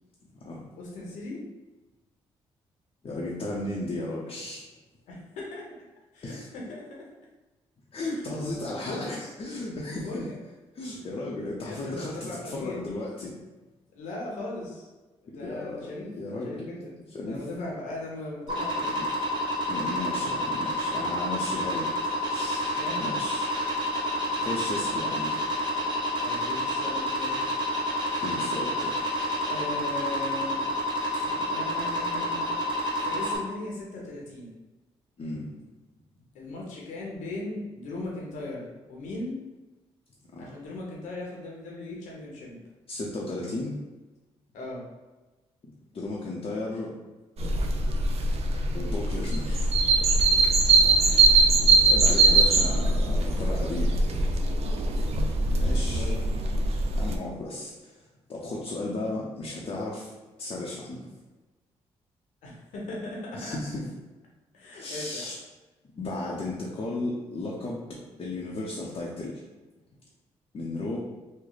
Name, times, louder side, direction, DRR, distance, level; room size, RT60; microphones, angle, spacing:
voice 1, 0.8-1.5 5.1-5.7 6.1-7.0 8.4-9.1 9.9-10.3 11.6-12.8 13.9-14.9 15.2-19.0 22.7-23.1 26.2-27.5 29.2-30.6 31.1-32.5 33.0-34.5 36.3-39.4 40.4-42.6 44.5-44.9 50.7-51.0 52.6-52.7 53.1-53.4 55.5-56.3 62.4-63.5 64.5-65.3, left 2 dB, 85° left, -2 dB, 0.9 m, -38 dB
voice 2, 3.0-4.6 6.2-6.5 7.9-10.3 10.7-13.4 15.4-16.6 17.1-17.4 18.9-19.1 19.7-23.5 24.4-25.4 28.2-29.0 35.2-35.5 40.3-40.4 42.9-43.8 45.9-46.9 48.7-49.7 51.9-54.0 55.6-56.1 56.9-60.1 60.4-61.1 63.3-63.8 64.7-65.4 65.9-67.8 68.2-69.4 70.5-71.0, left 2 dB, 50° left, -4 dB, 0.7 m, -35 dB
sound 1, 18.5-33.4, left 1 dB, 40° right, 1.4 m, -29 dB
sound 2, 47.4-57.2, right 3 dB, 55° right, 0.5 m, -22 dB
3.1 x 2.1 x 3.9 m, 1.2 s
supercardioid pair, 60°, 12 cm